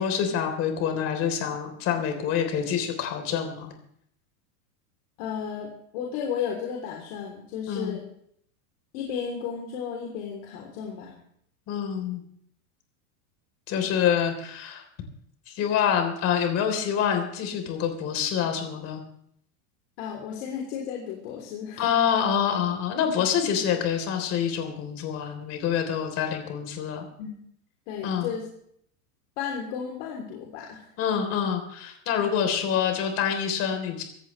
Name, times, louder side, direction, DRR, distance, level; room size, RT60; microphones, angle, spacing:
voice 1, 0.0-3.7 7.7-8.0 11.7-12.2 13.7-14.8 15.5-19.0 21.8-27.1 28.0-28.3 31.0-34.0, left 8 dB, 35° left, 5 dB, 3.8 m, -26 dB
voice 2, 5.2-8.0 8.9-11.2 20.0-21.8 27.2-27.3 27.9-28.5 29.4-30.9, left 7 dB, 50° left, -1 dB, 3.5 m, -33 dB
24.5 x 14.0 x 3.3 m, 0.68 s
supercardioid pair, 155°, 44 cm